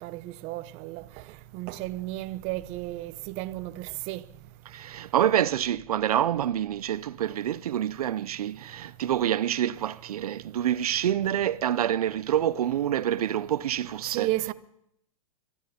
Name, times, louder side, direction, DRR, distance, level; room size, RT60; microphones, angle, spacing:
voice 1, 0.0-1.0 1.5-4.2 14.1-14.5, right 17 dB, 35° right, 0.8 m, -33 dB
voice 2, 4.7-14.3, right 11 dB, 90° right, 0.5 m, -27 dB
23.0 x 12.5 x 4.2 m
hypercardioid pair, 140°, 19 cm